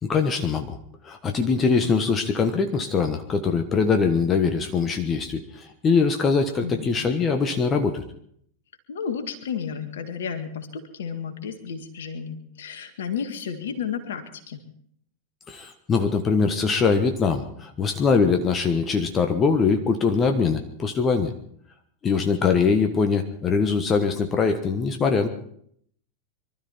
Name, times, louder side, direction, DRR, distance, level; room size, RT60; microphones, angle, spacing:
voice 1, 0.0-0.8 1.0-8.0 15.5-21.3 22.0-25.3, left 5 dB, 25° left, 6 dB, 1.3 m, -22 dB
voice 2, 6.6-6.9 8.9-14.6, left 7 dB, 60° left, 8 dB, 1.9 m, -32 dB
24.0 x 13.0 x 4.4 m, 0.66 s
figure-of-eight pair, 90°, 0 cm